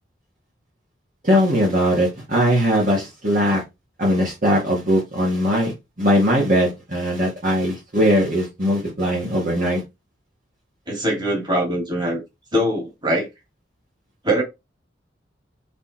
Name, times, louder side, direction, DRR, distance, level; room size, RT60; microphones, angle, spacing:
voice 1, 1.2-3.6 4.0-5.7 6.0-9.8, equal, 45° right, 2.1 m, -20 dB
voice 2, 10.9-12.2 12.5-13.3 14.2-14.4, right 1 dB, 25° right, 2.8 m, -22 dB
5.6 x 4.4 x 4.4 m
head